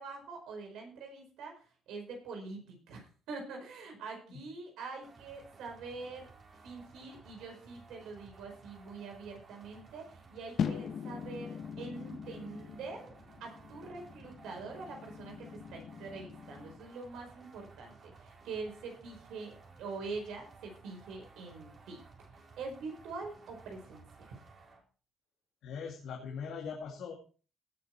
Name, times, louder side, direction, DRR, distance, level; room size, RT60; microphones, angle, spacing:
voice 1, 0.0-6.3 6.6-13.1 13.4-22.0 22.6-24.3, right 4 dB, 85° right, 2 dB, 4.7 m, -44 dB
sound 1, 5.0-24.8, right 4 dB, 50° right, 3.8 m, -57 dB
sound 2, 10.6-16.8, left 7 dB, 65° left, 1.2 m, -41 dB
voice 2, 25.6-27.2, left 6 dB, 80° left, 0 dB, 2.2 m, -41 dB
17.5 x 6.8 x 4.4 m, 0.38 s
cardioid pair, 90°, 0 cm